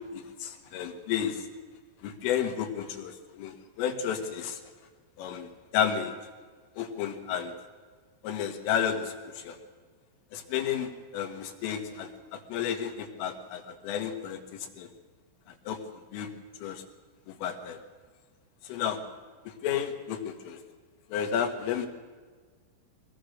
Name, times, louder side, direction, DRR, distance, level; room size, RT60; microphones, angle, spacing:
voice 1, 0.1-1.4 2.0-4.6 5.2-5.5 5.7-6.1 6.8-7.5 8.2-9.1 9.4-9.6 10.3-14.4 14.8-14.9 15.7-15.8 16.1-16.3 16.6-16.8 17.3-17.8 18.7-19.0 19.6-20.6 21.1-21.9, left 8 dB, 80° left, 5 dB, 4.2 m, -31 dB
23.5 x 19.0 x 6.5 m, 1.5 s
omnidirectional pair, 5.8 m